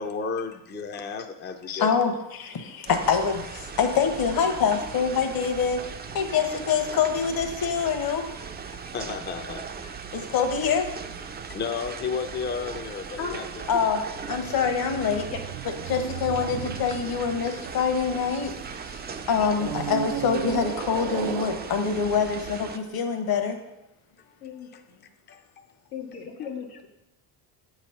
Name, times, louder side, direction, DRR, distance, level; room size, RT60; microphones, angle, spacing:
voice 1, 0.0-1.9 8.7-10.0 11.5-13.4 19.4-19.5 24.7-24.8 25.3-25.4 26.4-26.5, left 5 dB, 25° left, 6 dB, 0.6 m, -33 dB
voice 2, 1.7-5.8 6.1-8.2 10.1-10.9 13.7-14.0 14.3-15.3 15.6-18.5 18.9-19.0 19.3-23.6, left 6 dB, 50° left, 6 dB, 1.2 m, -25 dB
sound 1, 2.9-22.8, right 6 dB, 20° right, 0.5 m, -39 dB
sound 2, 14.1-18.8 19.5-22.9, right 10 dB, 70° right, 0.6 m, -36 dB
voice 3, 24.4-25.0 25.9-26.9, left 6 dB, 85° left, 1 dB, 1.3 m, -36 dB
8.1 x 3.2 x 5.7 m, 0.91 s
supercardioid pair, 70°, 46 cm